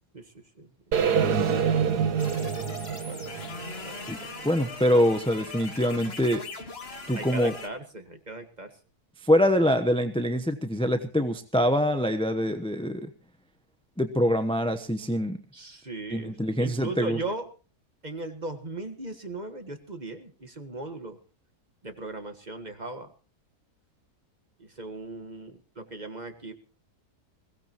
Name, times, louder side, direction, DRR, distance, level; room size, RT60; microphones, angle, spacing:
sound 1, 0.9-5.0, right 7 dB, 80° right, 1.7 m, -27 dB
voice 1, 1.1-2.8 3.0-3.2 3.8-3.9 4.2-4.3 7.1-8.7 15.5-17.5 18.0-21.2 21.8-23.1 24.6-26.5, right 2 dB, 30° right, 7 dB, 1.7 m, -38 dB
sound 2, 2.2-7.7, left 4 dB, 40° left, 2.0 m, -41 dB
voice 2, 4.1-6.4 7.1-7.5 9.2-13.1 14.0-15.4 16.1-17.2, equal, 5° left, 8 dB, 0.7 m, -24 dB
22.0 x 17.5 x 3.0 m, 0.34 s
omnidirectional pair, 1.7 m